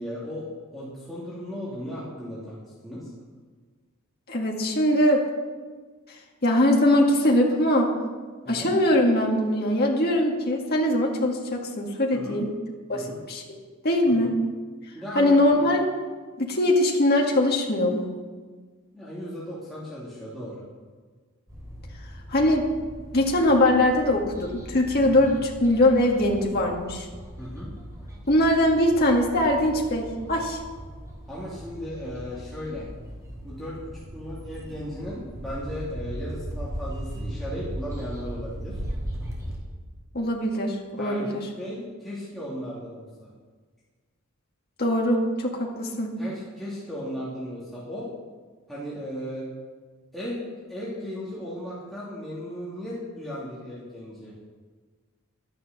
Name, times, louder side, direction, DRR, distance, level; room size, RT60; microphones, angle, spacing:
voice 1, 0.0-3.1 8.4-8.7 12.1-12.4 12.9-13.2 14.1-14.3 14.9-15.6 18.9-20.6 25.0-25.3 27.4-27.7 31.3-32.9 33.4-38.8 41.0-43.1 46.2-48.1 48.7-49.5 50.1-50.4 50.7-54.3, equal, ahead, -9 dB, 2.8 m, -36 dB
voice 2, 4.3-5.2 6.4-7.9 8.5-12.5 12.9-13.6 13.8-14.3 15.2-15.8 16.4-18.1 22.3-22.6 23.1-27.1 28.3-30.6 40.1-41.5 44.8-46.2, left 1 dB, 45° left, 0 dB, 2.2 m, -22 dB
sound 1, 21.5-39.6, equal, 15° right, 3.2 m, -38 dB
12.0 x 10.5 x 6.8 m, 1.5 s
head